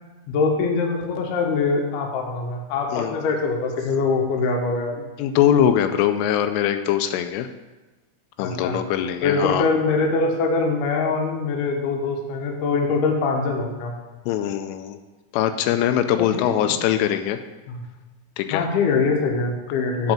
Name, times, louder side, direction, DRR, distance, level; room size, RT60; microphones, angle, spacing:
voice 1, 0.3-4.9 8.4-8.8 9.2-14.0 16.2-16.7 17.7-17.8 18.5-20.1, left 4 dB, 70° left, 1 dB, 2.6 m, -23 dB
voice 2, 5.2-7.5 8.4-9.6 14.3-15.0 15.3-17.4 18.4-18.6 20.0-20.1, left 10 dB, 85° left, 8 dB, 3.0 m, -22 dB
7.9 x 5.1 x 7.2 m, 1.2 s
omnidirectional pair, 5.6 m